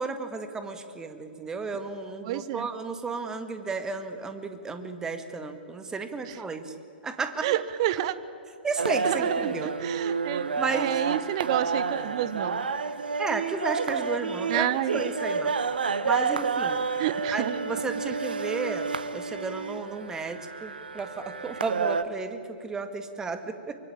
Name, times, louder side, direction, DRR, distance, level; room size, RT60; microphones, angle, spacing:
voice 1, 0.0-6.7 7.0-7.5 8.6-9.7 10.6-11.0 13.2-15.5 16.0-16.8 17.3-18.9 19.1-23.8, right 4 dB, 10° right, 8 dB, 1.9 m, -33 dB
voice 2, 2.2-2.7 6.3-6.4 7.4-8.1 9.0-12.6 14.5-15.0 17.0-17.5, right 12 dB, 40° right, 15 dB, 1.3 m, -29 dB
sound 1, 8.8-22.0, right 5 dB, 65° right, 1.3 m, -30 dB
24.5 x 23.5 x 8.8 m, 2.5 s
figure-of-eight pair, 110°, 5 cm